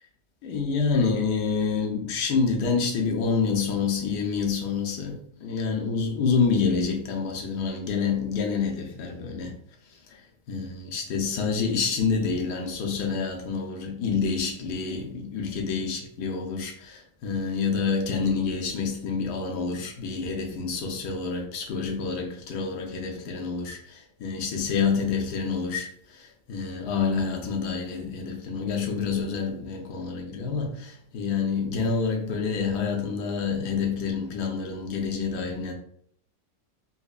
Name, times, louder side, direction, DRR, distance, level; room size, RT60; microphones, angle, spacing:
voice 1, 0.4-9.6 10.1-10.2 10.5-35.7, left 5 dB, 75° left, 1.3 m, -28 dB
4.2 x 2.6 x 2.4 m
omnidirectional pair, 1.8 m